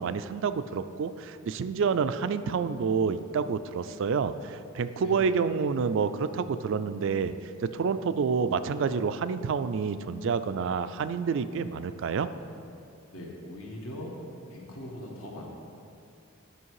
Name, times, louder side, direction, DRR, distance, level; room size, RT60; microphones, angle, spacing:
voice 1, 0.0-7.3 7.6-12.3, right 5 dB, 60° right, 12 dB, 0.3 m, -28 dB
voice 2, 5.0-5.3 13.1-14.2 14.5-15.5, left 1 dB, 75° left, -1 dB, 1.4 m, -40 dB
9.9 x 5.7 x 4.7 m, 2.6 s
head